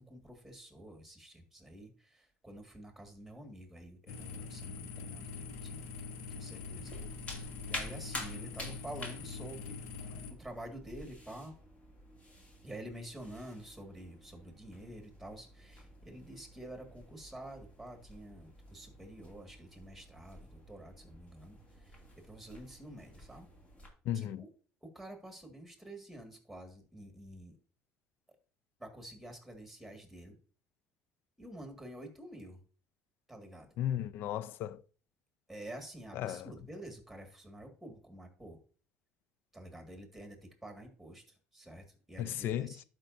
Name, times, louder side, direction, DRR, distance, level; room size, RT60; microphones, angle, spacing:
voice 1, 0.0-5.8 6.3-6.9 7.7-9.8 10.4-11.5 12.6-23.5 24.1-24.5 24.8-27.6 28.8-30.4 31.4-32.6 33.3-33.8 35.5-38.6 39.5-42.8, right 1 dB, ahead, 1.9 m, -49 dB
sound 1, 4.1-10.3, left 5 dB, 85° left, 0.9 m, -44 dB
sound 2, 5.0-23.9, left 1 dB, 35° left, 2.3 m, -50 dB
voice 2, 24.1-24.4 33.8-34.8 36.2-36.5 42.2-42.8, left 11 dB, 65° left, 0.4 m, -35 dB
11.5 x 5.2 x 2.6 m
cardioid pair, 110°, 4 cm